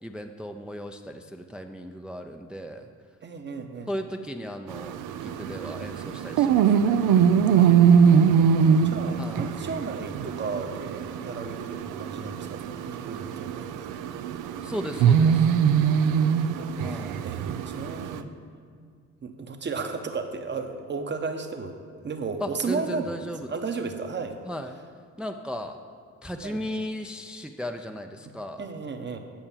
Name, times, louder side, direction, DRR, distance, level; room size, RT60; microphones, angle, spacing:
voice 1, 0.0-2.9 3.9-7.0 9.2-9.5 14.6-15.5 16.8-17.2 22.4-23.6 24.5-24.8 25.2-25.8 26.2-28.7, equal, 5° right, 5 dB, 0.5 m, -36 dB
voice 2, 3.2-3.9 7.6-13.9 15.8-18.3 18.8-18.9 19.2-21.8 22.0-23.1 23.5-24.4 26.4-26.6 28.6-29.2, right 4 dB, 35° right, 6 dB, 1.0 m, -35 dB
sound 1, 4.7-18.2, right 7 dB, 90° right, 0.6 m, -23 dB
8.9 x 5.5 x 7.3 m, 2.1 s
cardioid pair, 90°, 30 cm